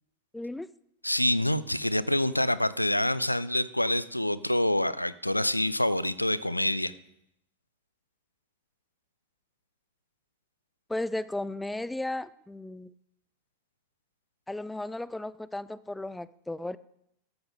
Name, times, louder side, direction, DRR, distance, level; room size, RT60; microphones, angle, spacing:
voice 1, 0.3-0.7 10.9-12.9 14.5-16.8, left 2 dB, 5° left, 19 dB, 0.4 m, -35 dB
voice 2, 1.0-6.9, left 1 dB, 85° left, 18 dB, 0.5 m, -26 dB
14.0 x 13.0 x 3.7 m, 0.76 s
figure-of-eight pair, 90°, 0 cm